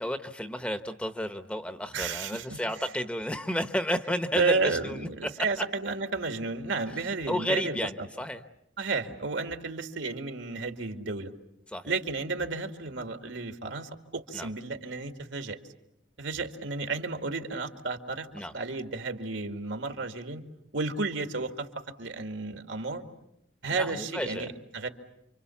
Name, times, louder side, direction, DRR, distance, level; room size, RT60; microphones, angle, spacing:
voice 1, 0.0-5.5 7.3-8.4 11.7-11.9 14.3-14.5 18.3-18.5 23.7-24.5, equal, 5° left, 9 dB, 1.0 m, -32 dB
voice 2, 1.9-2.6 4.3-8.1 8.8-11.3 11.8-15.6 16.2-18.3 18.5-20.4 20.7-21.7 22.0-23.0 23.6-24.9, right 3 dB, 75° right, 6 dB, 2.2 m, -32 dB
29.0 x 25.5 x 7.1 m, 0.82 s
head